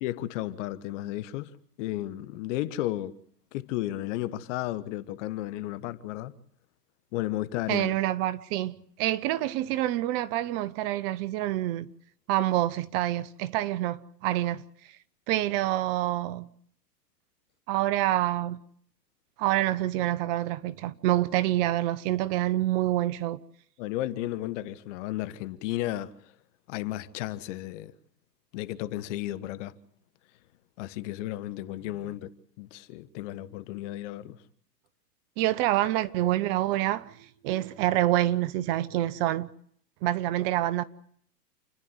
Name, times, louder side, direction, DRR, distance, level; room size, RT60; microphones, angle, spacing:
voice 1, 0.0-3.2 3.5-6.3 7.1-7.9 23.8-26.1 26.7-27.9 28.5-29.7 30.8-32.3 32.6-34.4, left 15 dB, 45° left, 1.4 m, -33 dB
voice 2, 7.7-11.9 12.3-14.6 15.3-16.5 17.7-18.6 19.4-23.4 35.4-39.5 40.0-40.8, right 14 dB, 35° right, 0.8 m, -27 dB
29.0 x 10.5 x 9.7 m
hypercardioid pair, 120°, 49 cm